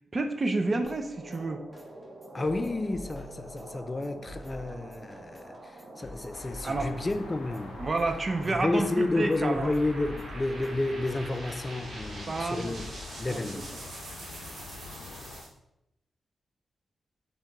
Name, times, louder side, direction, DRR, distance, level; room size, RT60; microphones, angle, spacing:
voice 1, 0.1-1.6 6.6-6.9 7.8-9.7 12.3-12.9 13.3-13.4, right 2 dB, 40° right, 0.6 m, -29 dB
sound 1, 0.8-13.8, left 1 dB, 5° left, 1.1 m, -49 dB
sound 2, 0.9-15.5, right 2 dB, 60° right, 1.0 m, -45 dB
voice 2, 2.3-5.6 6.0-7.8 8.5-12.9 13.2-13.6, left 2 dB, 30° left, 0.4 m, -31 dB
sound 3, 6.3-15.4, left 4 dB, 85° left, 0.5 m, -45 dB
3.7 x 3.5 x 4.0 m
supercardioid pair, 50°, 0 cm